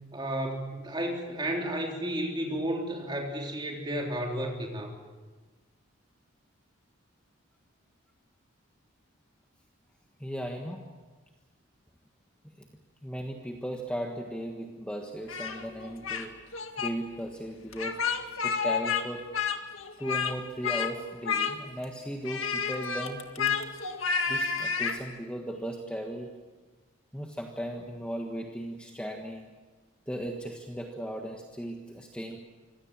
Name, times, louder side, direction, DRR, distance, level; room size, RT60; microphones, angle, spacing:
voice 1, 0.1-4.9, right 1 dB, 20° right, 1 dB, 3.5 m, -32 dB
voice 2, 10.2-10.8 12.6-12.7 13.0-16.3 16.8-18.0 18.4-19.2 20.0-23.6 24.3-26.3 27.1-29.5 30.1-32.4, equal, 5° left, 1 dB, 1.5 m, -36 dB
Speech, 15.3-16.3 16.5-16.9 17.7-19.0 19.3-20.3 20.6-20.9 21.2-21.8 22.2-25.0, left 6 dB, 85° left, 1.9 m, -30 dB
25.0 x 17.0 x 7.6 m, 1.3 s
head